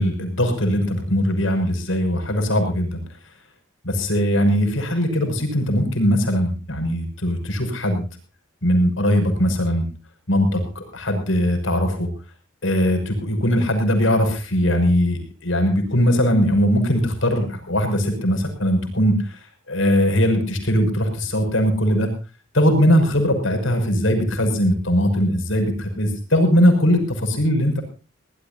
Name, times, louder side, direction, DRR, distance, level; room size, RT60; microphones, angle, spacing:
voice 1, 0.0-3.0 3.8-8.1 8.6-9.9 10.3-12.1 12.6-22.1 22.5-27.8, equal, 75° left, 5 dB, 6.1 m, -20 dB
22.5 x 18.5 x 2.7 m, 0.34 s
head